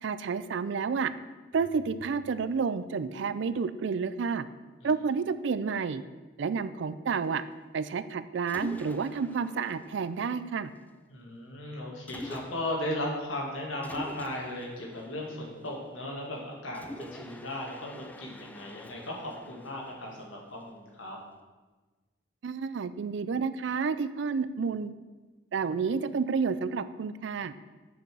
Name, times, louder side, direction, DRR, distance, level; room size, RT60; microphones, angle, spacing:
voice 1, 0.0-1.1 1.5-4.4 4.8-6.0 6.4-7.4 7.7-10.7 22.4-24.9 25.5-27.5, right 5 dB, 65° right, 14 dB, 0.4 m, -30 dB
Mechanisms, 8.5-10.9 12.1-12.9 13.8-16.1 16.7-20.9, left 1 dB, 10° left, 0.3 m, -46 dB
voice 2, 11.1-21.2, left 1 dB, 90° left, -1 dB, 1.8 m, -36 dB
6.6 x 5.5 x 6.0 m, 1.3 s
head